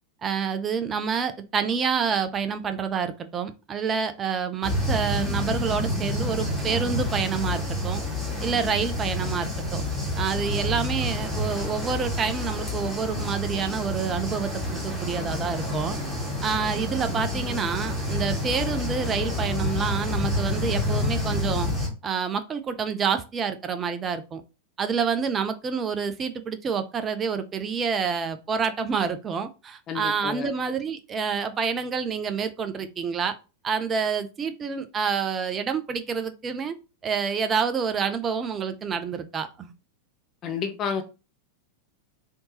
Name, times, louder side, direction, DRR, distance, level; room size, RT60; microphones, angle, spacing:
voice 1, 0.2-8.0 8.4-9.9 10.2-16.0 16.4-21.7 22.0-24.4 24.8-33.3 33.6-36.8 37.0-39.7, right 6 dB, 25° right, 9 dB, 0.4 m, -28 dB
sound 1, 4.6-21.9, left 1 dB, ahead, 1.5 m, -28 dB
voice 2, 29.9-30.5 40.4-41.0, left 6 dB, 30° left, 6 dB, 0.5 m, -30 dB
3.5 x 2.7 x 2.8 m, 0.30 s
figure-of-eight pair, 90°, 0 cm